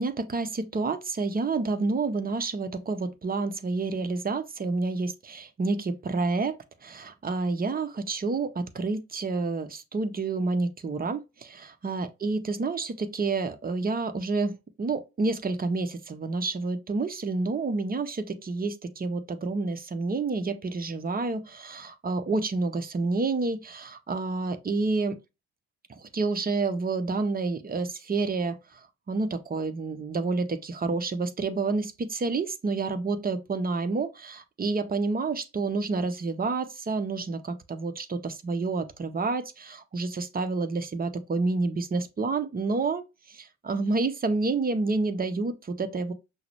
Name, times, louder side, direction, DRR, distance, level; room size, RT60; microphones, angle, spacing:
voice 1, 0.0-25.2 25.9-28.8 29.1-43.0 43.3-46.1, right 3 dB, 20° right, 0.7 m, -29 dB
5.8 x 2.1 x 3.1 m
hypercardioid pair, 50°, 43 cm